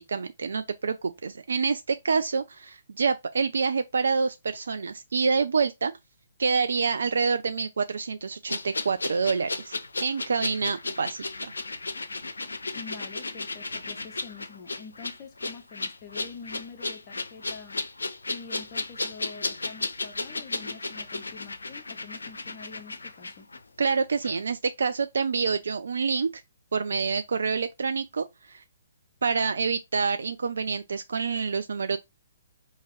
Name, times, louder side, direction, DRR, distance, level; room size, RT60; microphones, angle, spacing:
voice 1, 0.0-5.9 6.4-11.5 23.8-26.4 26.7-28.6 29.2-32.0, right 5 dB, 65° right, 0.3 m, -27 dB
sound 1, 8.5-24.0 24.2-24.4, left 3 dB, 75° left, 0.5 m, -34 dB
voice 2, 12.7-17.8 18.3-23.5, left 5 dB, 30° left, 0.6 m, -46 dB
4.7 x 2.8 x 3.0 m
figure-of-eight pair, 130°, 0 cm